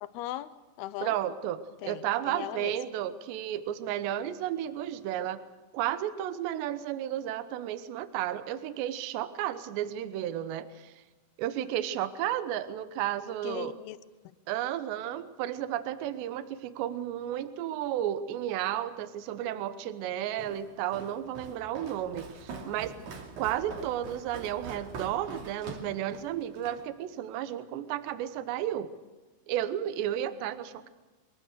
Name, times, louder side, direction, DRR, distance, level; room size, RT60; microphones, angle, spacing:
voice 1, 0.0-1.1 1.8-2.7 13.4-14.0, left 14 dB, 75° left, 14 dB, 2.6 m, -38 dB
voice 2, 1.0-5.4 5.7-10.9 11.4-13.7 14.5-23.0 23.4-28.9 29.5-30.9, right 11 dB, 80° right, 12 dB, 3.2 m, -33 dB
Walk footsteps, 20.4-26.9, right 4 dB, 50° right, 3.5 m, -43 dB
23.5 x 21.5 x 6.5 m, 1.2 s
omnidirectional pair, 5.1 m